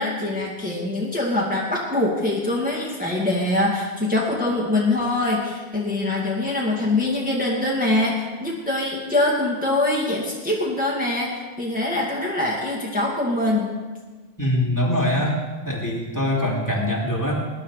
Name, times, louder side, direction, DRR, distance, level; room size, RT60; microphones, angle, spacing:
voice 1, 0.0-13.7, left 2 dB, 10° right, -4 dB, 2.3 m, -23 dB
voice 2, 14.4-15.4 15.6-17.3, left 1 dB, 15° left, -3 dB, 2.7 m, -23 dB
20.0 x 10.5 x 5.0 m, 1.4 s
omnidirectional pair, 1.1 m